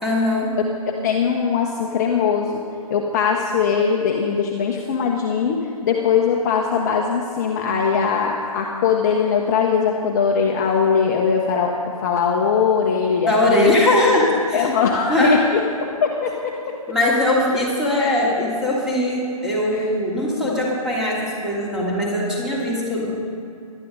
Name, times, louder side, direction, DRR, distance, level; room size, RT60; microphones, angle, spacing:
voice 1, 0.0-0.6 13.2-14.7 15.1-15.4 16.9-23.1, left 1 dB, 5° right, -6 dB, 3.0 m, -20 dB
voice 2, 1.0-2.6 2.9-11.7 12.0-13.8 14.5-15.6 16.0-16.5 19.7-19.9, left 6 dB, 30° left, 1 dB, 1.1 m, -20 dB
17.5 x 12.0 x 5.3 m, 2.6 s
figure-of-eight pair, 135°, 19 cm